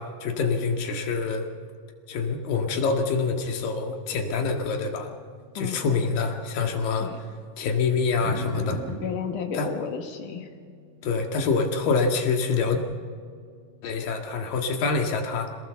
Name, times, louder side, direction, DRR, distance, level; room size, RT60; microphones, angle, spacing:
voice 1, 0.0-1.5 2.1-5.1 5.6-7.1 7.6-8.8 9.5-9.7 11.0-12.8 13.8-15.5, left 4 dB, 85° left, 3 dB, 3.7 m, -26 dB
sound 1, 4.4-14.5, left 1 dB, 55° right, 9.0 m, -43 dB
voice 2, 5.6-6.1 7.0-7.2 9.0-10.5, left 6 dB, 70° left, 4 dB, 3.5 m, -32 dB
26.5 x 18.5 x 7.0 m, 2.1 s
omnidirectional pair, 3.9 m